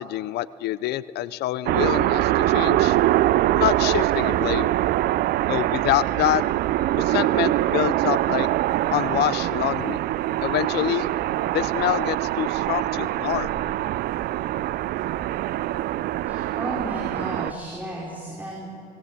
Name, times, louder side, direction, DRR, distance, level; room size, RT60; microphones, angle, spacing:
voice 1, 0.0-3.0 3.5-4.7 5.5-6.4 7.0-8.5 8.9-10.0 10.4-11.1 11.5-13.5, left 15 dB, 75° left, 18 dB, 0.5 m, -26 dB
sound 1, 1.7-17.5, right 15 dB, 65° right, 0.4 m, -23 dB
sound 2, 2.9-17.5, right 5 dB, 80° right, 1.7 m, -42 dB
voice 2, 16.3-18.7, right 1 dB, 10° right, -4 dB, 4.6 m, -34 dB
19.0 x 18.5 x 8.5 m, 2.6 s
cardioid pair, 110°, 17 cm